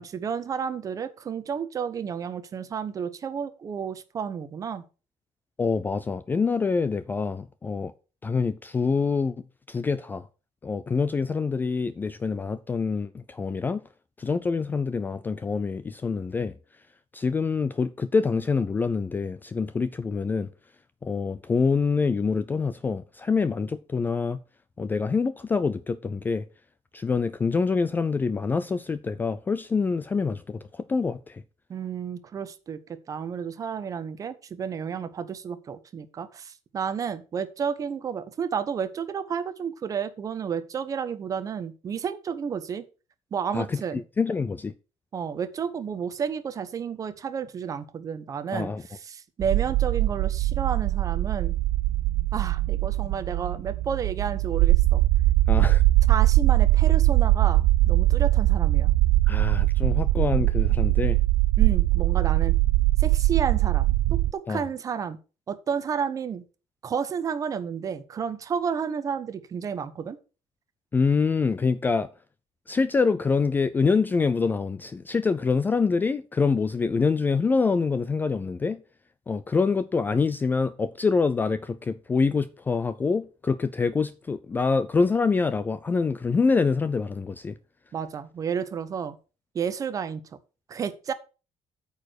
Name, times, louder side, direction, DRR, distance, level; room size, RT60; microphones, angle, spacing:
voice 1, 0.0-4.8 31.7-42.8 43.3-44.0 45.1-51.6 52.3-55.0 56.1-58.9 61.6-62.5 63.0-65.2 65.5-66.4 66.8-70.2 87.9-89.2 89.5-90.2 90.7-91.1, right 7 dB, 30° right, 0.9 m, -31 dB
voice 2, 5.6-7.9 8.2-9.4 9.7-10.3 10.6-13.8 14.2-16.5 17.1-20.5 21.0-24.4 24.8-26.4 26.9-31.4 43.5-44.7 48.5-48.8 55.5-55.8 59.3-61.2 64.5-64.6 70.9-72.1 72.7-78.8 79.3-87.5, left 4 dB, 15° left, 0.4 m, -25 dB
sound 1, 49.4-64.3, right 17 dB, 65° right, 0.4 m, -21 dB
8.9 x 4.8 x 6.4 m
cardioid pair, 175°, 12 cm